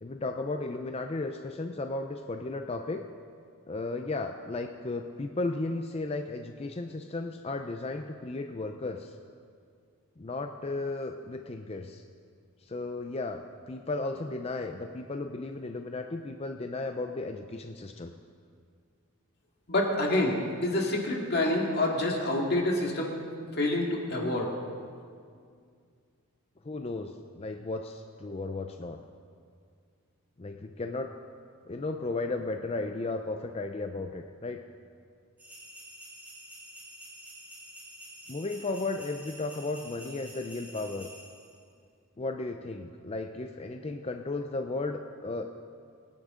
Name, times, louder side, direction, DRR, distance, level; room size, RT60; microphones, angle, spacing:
voice 1, 0.0-3.0 3.7-9.1 10.2-12.0 12.6-18.1 26.6-29.0 30.4-31.1 31.7-34.6 38.3-41.1 42.2-45.4, left 2 dB, 30° left, 5 dB, 0.4 m, -35 dB
voice 2, 19.7-23.1 23.5-24.5, left 1 dB, 50° left, 0 dB, 2.1 m, -27 dB
sound 1, 35.4-41.6, right 1 dB, 10° right, 4.2 m, -48 dB
24.0 x 9.9 x 3.8 m, 2.2 s
head